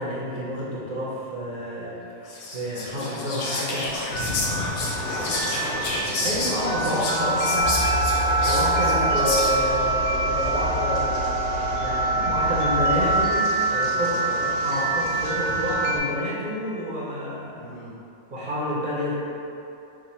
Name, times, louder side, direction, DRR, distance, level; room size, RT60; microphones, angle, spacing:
voice 1, 0.0-2.0 2.2-3.8 6.2-7.7 8.4-11.2 11.8-14.1 14.4-17.6 18.3-19.2, equal, 45° right, -7 dB, 0.7 m, -29 dB
Whispering, 2.3-9.8, left 2 dB, 80° left, 1.1 m, -30 dB
voice 2, 3.7-6.6 7.3-8.0 13.9-14.9 17.5-17.9, equal, 40° left, -9 dB, 1.1 m, -40 dB
sound 1, 4.1-16.0, right 2 dB, 60° left, 0.6 m, -25 dB
sound 2, 7.6-13.2, equal, 65° right, 1.0 m, -28 dB
4.9 x 2.2 x 4.2 m, 2.7 s
omnidirectional pair, 1.5 m